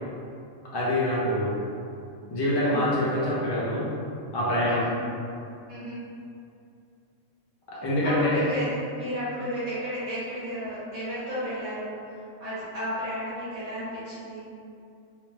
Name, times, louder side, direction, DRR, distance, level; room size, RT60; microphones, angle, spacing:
voice 1, 0.7-1.5 2.3-3.9 4.3-4.8 7.8-8.4, left 1 dB, 30° left, -7 dB, 0.5 m, -25 dB
voice 2, 2.6-2.9 4.6-5.0 5.7-6.0 8.0-14.5, equal, 30° right, -12 dB, 1.5 m, -33 dB
3.1 x 2.9 x 3.2 m, 2.5 s
omnidirectional pair, 1.4 m